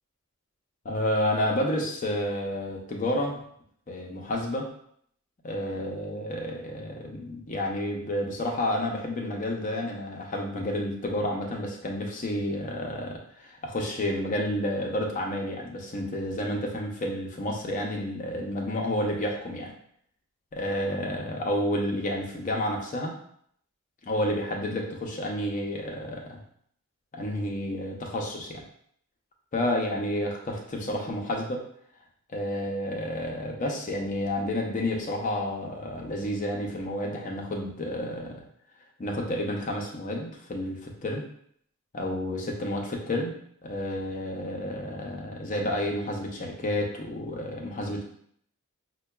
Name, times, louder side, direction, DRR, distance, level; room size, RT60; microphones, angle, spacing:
voice 1, 0.8-3.4 3.9-4.7 5.4-19.7 20.5-23.1 24.1-26.4 27.1-28.6 29.5-31.6 32.3-38.4 39.0-41.3 41.9-43.3 43.6-48.0, left 1 dB, 35° left, 0 dB, 0.6 m, -30 dB
5.5 x 2.2 x 2.2 m, 0.66 s
head